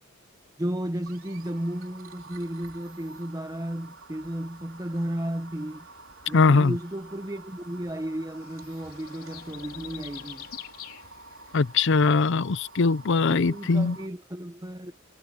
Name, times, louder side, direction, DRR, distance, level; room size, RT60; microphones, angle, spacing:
voice 1, 0.6-5.9 6.3-10.5 13.3-15.0, right 1 dB, 15° right, 0.9 m, -33 dB
sound 1, 1.1-14.1, right 3 dB, 65° right, 4.5 m, -49 dB
sound 2, 4.7-12.0, left 9 dB, 85° left, 4.0 m, -48 dB
voice 2, 6.3-6.8 11.5-14.0, left 4 dB, 60° left, 0.6 m, -21 dB
head